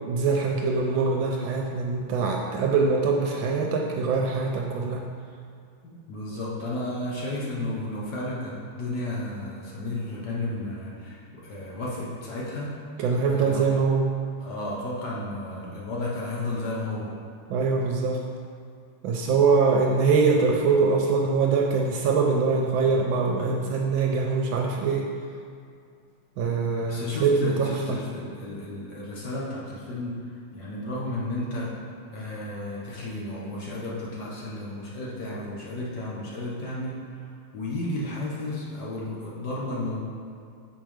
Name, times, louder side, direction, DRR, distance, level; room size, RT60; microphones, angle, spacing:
voice 1, 0.0-5.0 13.0-14.1 17.5-18.2 19.0-25.1 26.4-28.0, right 4 dB, 75° right, 0 dB, 1.3 m, -23 dB
voice 2, 5.8-12.8 13.3-13.6 14.4-17.1 26.9-30.2 30.5-31.7 32.1-37.0 37.5-40.0, left 1 dB, 55° left, -5 dB, 1.5 m, -33 dB
6.1 x 4.5 x 5.0 m, 2.4 s
omnidirectional pair, 2.4 m